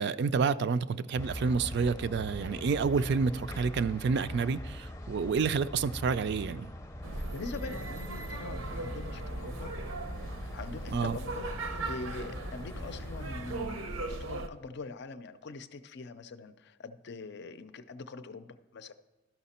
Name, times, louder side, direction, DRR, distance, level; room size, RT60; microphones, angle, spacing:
voice 1, 0.0-6.7 10.9-11.2, right 5 dB, 55° right, 0.4 m, -29 dB
sound 1, 1.2-13.7, left 1 dB, 15° left, 0.6 m, -42 dB
sound 2, 7.0-14.5, right 2 dB, 90° right, 0.8 m, -38 dB
voice 2, 7.1-9.8 10.4-18.9, left 3 dB, 60° left, 0.5 m, -43 dB
12.5 x 5.8 x 4.2 m
head